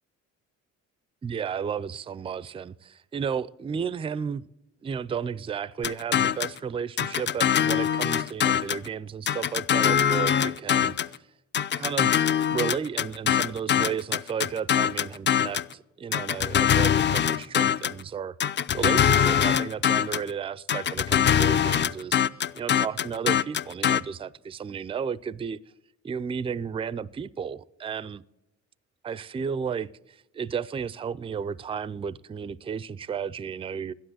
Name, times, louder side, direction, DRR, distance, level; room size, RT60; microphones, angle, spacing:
voice 1, 1.2-4.5 4.8-11.2 11.8-18.4 18.7-22.2 22.5-25.6 26.0-28.2 29.0-33.9, right 7 dB, 20° right, 0.4 m, -33 dB
sound 1, 5.8-6.6 7.0-8.9 9.3-11.2 11.5-15.7 16.1-18.0 18.4-20.3 20.7-24.0, left 9 dB, 40° left, 0.5 m, -23 dB
12.0 x 10.5 x 6.3 m
cardioid pair, 100°, 30 cm